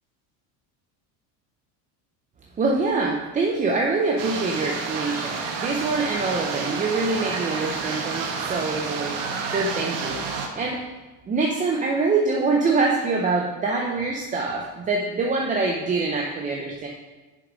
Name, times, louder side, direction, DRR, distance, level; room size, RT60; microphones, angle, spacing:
voice 1, 2.6-9.2 9.5-10.9 11.3-16.9, right 3 dB, 20° right, 0 dB, 0.5 m, -25 dB
sound 1, 4.2-10.5, right 5 dB, 65° right, 1.3 m, -30 dB
6.6 x 6.2 x 5.2 m, 1.2 s
cardioid pair, 145°, 45 cm